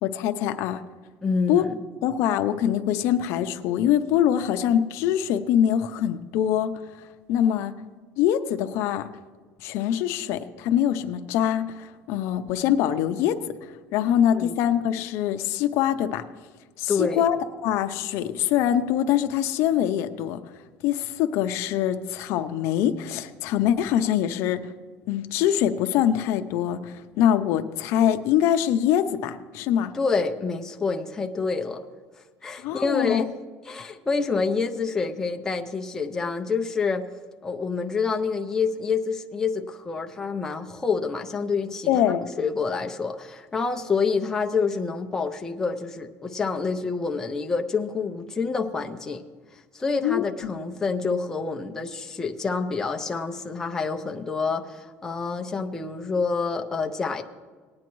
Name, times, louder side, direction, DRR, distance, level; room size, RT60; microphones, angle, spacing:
voice 1, 0.0-0.8 1.5-1.7 2.0-6.7 7.3-7.7 8.2-9.1 9.6-13.4 13.9-16.2 16.8-17.4 17.6-20.4 20.8-24.6 25.1-29.9 32.6-33.2 41.9-42.3 50.0-50.5, left 10 dB, 65° left, 9 dB, 0.6 m, -24 dB
voice 2, 1.2-1.8 14.3-14.6 16.9-17.2 29.9-31.8 32.4-33.3 33.7-37.0 37.4-41.9 42.4-49.2 49.7-57.2, left 4 dB, 10° left, 3 dB, 0.5 m, -27 dB
19.0 x 9.5 x 3.1 m, 1.4 s
cardioid pair, 170°, 5 cm